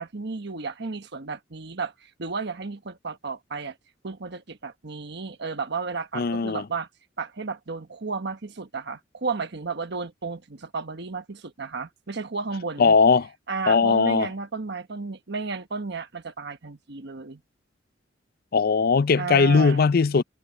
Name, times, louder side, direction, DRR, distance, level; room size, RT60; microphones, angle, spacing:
voice 1, 0.0-3.8 4.0-6.9 7.2-12.9 13.5-17.4 19.2-19.9, right 4 dB, 65° right, 1.3 m, -33 dB
voice 2, 6.1-6.6 12.8-13.3 13.7-14.3 18.5-20.2, left 5 dB, 55° left, 0.5 m, -19 dB
head